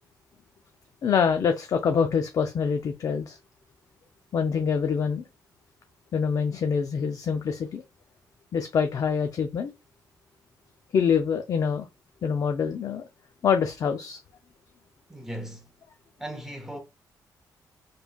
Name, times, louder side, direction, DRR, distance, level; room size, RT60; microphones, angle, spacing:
voice 1, 1.0-3.4 4.3-5.2 6.1-7.8 8.5-9.7 10.9-11.9 12.2-13.1 13.4-14.2, left 6 dB, 55° left, 0.4 m, -25 dB
voice 2, 15.1-15.7 16.2-16.8, right 1 dB, 5° right, 0.9 m, -37 dB
3.5 x 3.2 x 2.3 m
cardioid pair, 110°, 7 cm